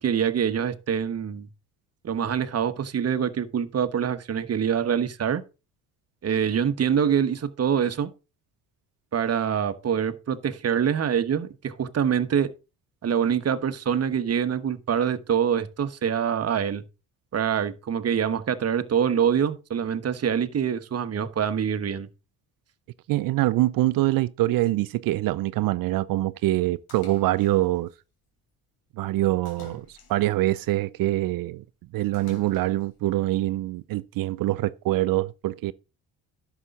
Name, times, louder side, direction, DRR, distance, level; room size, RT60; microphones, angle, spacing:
voice 1, 0.0-1.5 2.0-5.4 6.2-8.1 9.1-12.5 13.0-16.8 17.3-22.1, right 8 dB, 40° right, 1.3 m, -25 dB
voice 2, 23.1-27.9 29.0-31.6 31.9-35.7, right 16 dB, 65° right, 0.6 m, -24 dB
Splash splatter, 26.9-27.9 29.5-30.5 32.1-33.0, left 6 dB, 70° left, 3.7 m, -50 dB
11.0 x 7.1 x 3.8 m
supercardioid pair, 80°, 37 cm